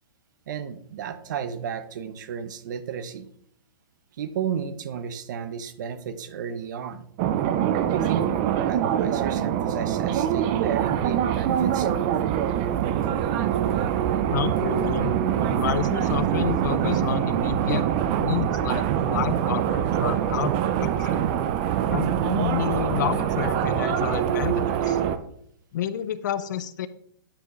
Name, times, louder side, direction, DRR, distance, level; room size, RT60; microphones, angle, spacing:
voice 1, 0.5-3.3 4.2-7.1 7.9-8.3 8.7-12.2 13.0-13.1 13.5-13.6, right 7 dB, 50° right, 12 dB, 0.7 m, -33 dB
sound 1, 7.2-25.2, right 10 dB, 25° right, 0.3 m, -24 dB
voice 2, 14.3-15.1 15.4-17.9 18.2-21.3 21.9-25.0 25.7-26.9, left 9 dB, 50° left, 14 dB, 0.5 m, -29 dB
9.9 x 5.8 x 3.1 m, 0.68 s
hypercardioid pair, 165°, 12 cm